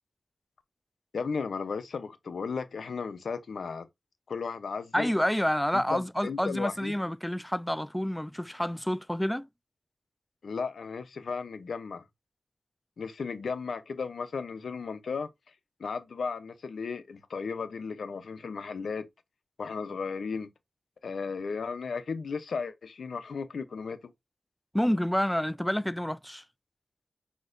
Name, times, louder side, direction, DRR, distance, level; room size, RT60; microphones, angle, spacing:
voice 1, 1.1-3.9 4.3-5.1 5.9-6.9 10.4-12.0 13.0-15.3 15.8-19.1 19.6-20.5 21.0-24.1, left 5 dB, 80° left, 0.7 m, -35 dB
voice 2, 4.9-9.5 24.7-26.4, equal, 5° left, 0.3 m, -28 dB
6.2 x 2.9 x 2.6 m
cardioid pair, 50°, 0 cm